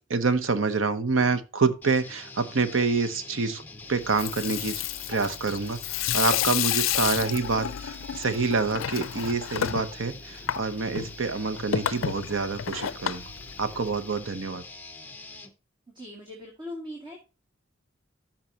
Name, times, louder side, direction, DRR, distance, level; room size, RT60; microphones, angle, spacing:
voice 1, 0.1-3.6 3.9-5.8 6.1-13.3 13.6-14.6, right 4 dB, 75° right, 0.8 m, -27 dB
sound 1, 1.8-15.5, left 3 dB, 10° left, 0.8 m, -45 dB
Water tap faucet / Sink (filling or washing), 4.0-14.2, left 10 dB, 75° left, 0.4 m, -31 dB
voice 2, 15.9-17.2, left 1 dB, 25° right, 2.1 m, -40 dB
14.0 x 5.8 x 2.8 m
head